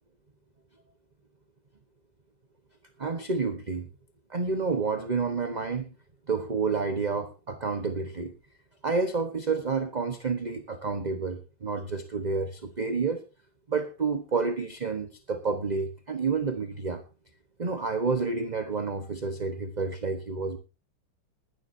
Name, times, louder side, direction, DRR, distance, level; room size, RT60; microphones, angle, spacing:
voice 1, 3.0-3.9 4.3-5.9 6.3-8.3 8.8-13.2 13.7-17.0 17.6-20.6, right 4 dB, 30° right, 8 dB, 0.9 m, -29 dB
20.0 x 12.0 x 2.7 m, 0.30 s
omnidirectional pair, 2.2 m